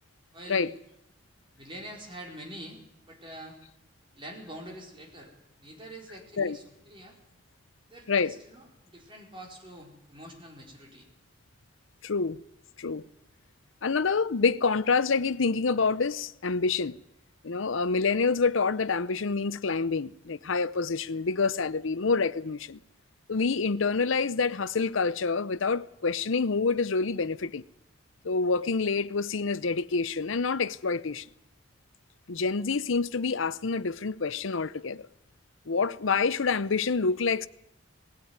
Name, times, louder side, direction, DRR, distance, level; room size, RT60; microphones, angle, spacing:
voice 1, 0.3-0.7 1.6-3.6 4.1-5.3 5.6-7.2 7.9-11.1, right 1 dB, 25° right, 4.6 m, -45 dB
voice 2, 12.0-12.4 12.8-13.1 13.8-17.0 17.4-22.8 23.3-27.6 28.2-31.3 32.3-35.1 35.7-37.5, left 4 dB, 75° left, 0.7 m, -27 dB
19.0 x 16.5 x 9.5 m
head